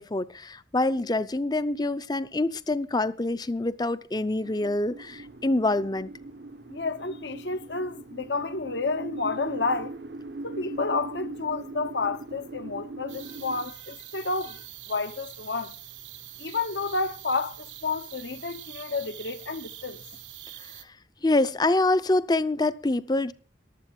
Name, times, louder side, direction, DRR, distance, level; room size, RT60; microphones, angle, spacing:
voice 1, 0.0-6.1 21.2-23.3, left 2 dB, 20° left, 0.6 m, -26 dB
sound 1, 4.4-13.7, right 2 dB, 65° right, 0.8 m, -40 dB
voice 2, 6.7-10.0 10.4-15.7 16.4-20.0, left 3 dB, 70° left, 1.0 m, -30 dB
sound 2, 13.1-20.8, right 13 dB, 90° right, 1.4 m, -44 dB
14.5 x 12.5 x 4.4 m
head